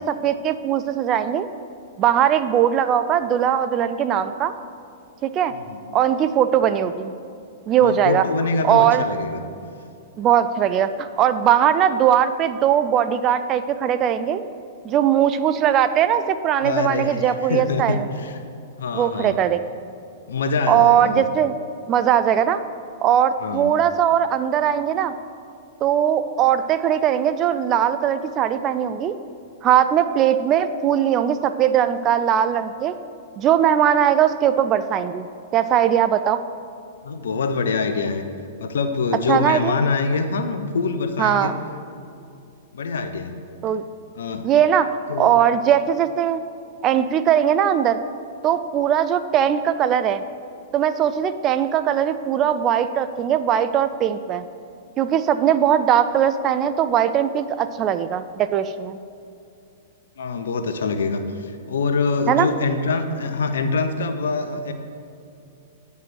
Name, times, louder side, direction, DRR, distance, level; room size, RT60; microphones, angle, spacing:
voice 1, 0.0-1.5 2.0-4.5 5.2-5.5 5.9-7.1 7.7-8.2 8.6-9.0 10.2-14.4 14.8-18.1 18.9-19.6 20.7-21.6 21.9-22.6 23.0-25.1 25.8-29.2 29.6-32.9 33.4-36.4 39.3-39.7 41.2-41.5 43.6-43.8 44.4-44.9 45.2-46.4 46.8-48.0 48.4-50.2 50.7-54.5 55.0-59.0 62.3-62.5, right 9 dB, 35° right, 11 dB, 0.5 m, -20 dB
voice 2, 7.8-9.4 16.6-18.4 18.8-19.4 20.3-21.3 23.4-23.7 37.0-38.2 38.6-41.5 42.7-43.4 44.2-44.5 45.1-45.4 60.2-64.7, left 4 dB, 75° left, 8 dB, 0.8 m, -24 dB
9.4 x 5.5 x 6.2 m, 2.5 s
hypercardioid pair, 110°, 0 cm